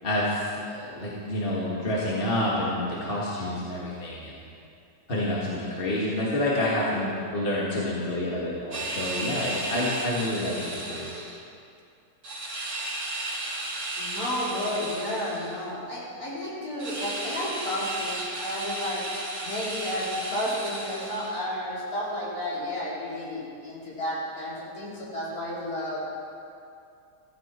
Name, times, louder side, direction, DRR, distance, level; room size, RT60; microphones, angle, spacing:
voice 1, 0.0-4.4 5.1-11.1, left 1 dB, 30° left, -6 dB, 2.2 m, -28 dB
sound 1, 8.7-11.4 12.2-15.6 16.8-21.4, right 2 dB, 80° right, 2.9 m, -34 dB
voice 2, 14.0-19.0 19.4-26.0, left 1 dB, 60° left, -8 dB, 4.9 m, -32 dB
15.5 x 15.0 x 4.5 m, 2.4 s
omnidirectional pair, 1.8 m